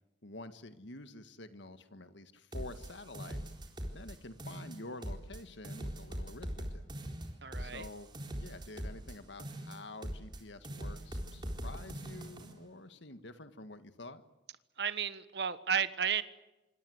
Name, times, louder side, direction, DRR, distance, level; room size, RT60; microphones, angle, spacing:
voice 1, 0.2-3.5 3.9-6.8 7.6-14.2, left 2 dB, 80° left, 10 dB, 1.7 m, -48 dB
sound 1, 2.5-4.1 4.4-5.4 5.6-9.1 9.4-10.4 10.6-12.5, equal, 25° right, 4.0 m, -41 dB
voice 2, 7.4-7.9 14.8-16.2, right 7 dB, 65° right, 13 dB, 1.3 m, -33 dB
27.0 x 25.5 x 8.0 m, 1.0 s
head